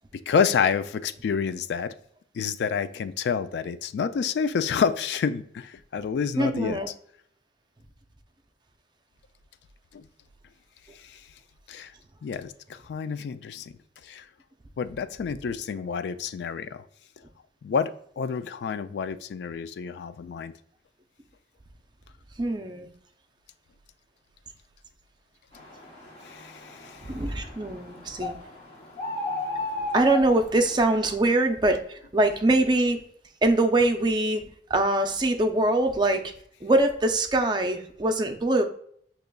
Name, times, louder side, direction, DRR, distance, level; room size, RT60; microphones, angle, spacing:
voice 1, 0.3-1.9 2.3-6.8 9.9-10.0 11.1-11.2 11.7-11.9 12.2-13.7 14.0-14.2 14.8-16.9 17.6-20.5 26.2-27.0, left 6 dB, 75° left, 13 dB, 0.3 m, -28 dB
voice 2, 6.4-6.9 22.4-22.9 27.1-28.3 29.9-33.0 33.4-36.3 36.6-38.6, right 2 dB, 25° right, 5 dB, 0.5 m, -23 dB
sound 1, 25.5-31.1, left 2 dB, 35° left, 1.0 m, -35 dB
6.4 x 2.9 x 2.2 m, 0.64 s
head